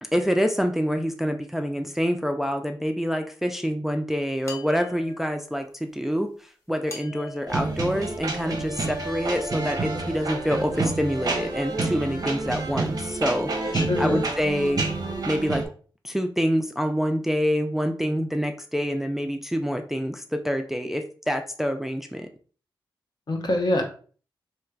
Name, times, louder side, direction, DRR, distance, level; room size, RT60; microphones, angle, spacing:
voice 1, 0.0-14.8 15.3-15.6 16.0-22.3, equal, 5° right, 6 dB, 0.4 m, -26 dB
sound 1, 4.4-5.5 6.9-8.8, left 2 dB, 35° left, 1.0 m, -43 dB
sound 2, 7.5-15.7, right 3 dB, 45° right, 0.6 m, -28 dB
voice 2, 13.7-14.2 23.3-23.8, left 1 dB, 55° left, 2 dB, 0.8 m, -24 dB
3.2 x 2.9 x 2.3 m, 0.41 s
cardioid pair, 45°, 9 cm